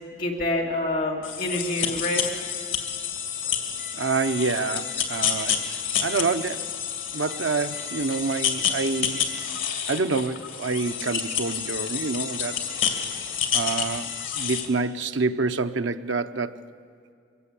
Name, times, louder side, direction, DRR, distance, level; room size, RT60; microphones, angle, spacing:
voice 1, 0.1-2.2, left 1 dB, 45° left, 2.4 m, -27 dB
sound 1, 1.2-14.7, left 8 dB, 80° left, 2.3 m, -29 dB
voice 2, 3.9-5.6 6.0-6.8 7.1-9.3 9.9-12.6 13.5-16.6, right 4 dB, 75° right, 0.7 m, -27 dB
24.0 x 17.0 x 8.3 m
head